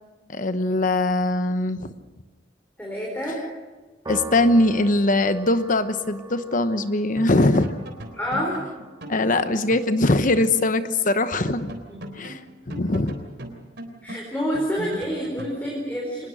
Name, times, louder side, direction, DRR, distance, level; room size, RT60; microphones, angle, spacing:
voice 1, 0.3-1.9 4.1-7.8 9.1-11.7 12.2-12.4 12.7-13.2, left 2 dB, 45° left, 11 dB, 1.0 m, -21 dB
voice 2, 2.8-3.4 8.1-8.6 11.9-12.2 14.0-16.3, equal, 10° left, -2 dB, 4.3 m, -28 dB
Piano, 4.1-10.6, right 1 dB, 25° right, 1.9 m, -41 dB
sound 1, 6.7-6.9 7.2-10.6 10.9-11.0 11.3-15.6, right 1 dB, 70° right, 3.6 m, -38 dB
25.0 x 20.0 x 6.4 m, 1.3 s
head